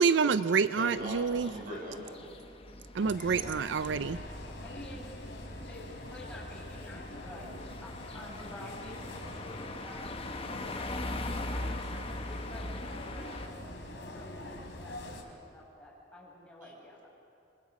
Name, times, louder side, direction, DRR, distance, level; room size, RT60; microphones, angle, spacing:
voice 1, 0.0-1.5 2.9-4.2, right 5 dB, 85° right, 14 dB, 0.5 m, -27 dB
voice 2, 0.7-2.2 16.6-16.7, equal, 50° right, -2 dB, 7.3 m, -40 dB
sound 1, 1.0-13.5, left 2 dB, 30° left, 1.2 m, -41 dB
sound 2, 3.0-15.2, left 1 dB, 90° left, 3.5 m, -44 dB
voice 3, 3.2-3.5 4.5-5.1 5.7-7.5 7.8-10.8 11.5-11.8 12.3-17.1, left 1 dB, 5° left, -5 dB, 6.8 m, -50 dB
28.0 x 24.5 x 5.4 m, 2.6 s
head